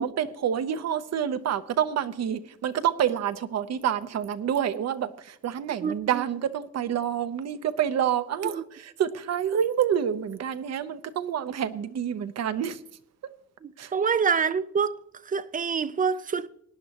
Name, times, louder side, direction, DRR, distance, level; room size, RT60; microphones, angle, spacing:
voice 1, 0.0-12.8 13.8-13.9, right 9 dB, 60° right, 0.8 m, -28 dB
voice 2, 13.6-15.0 15.3-16.5, right 6 dB, 25° right, 0.5 m, -26 dB
18.5 x 10.0 x 2.9 m
cardioid pair, 90°, 30 cm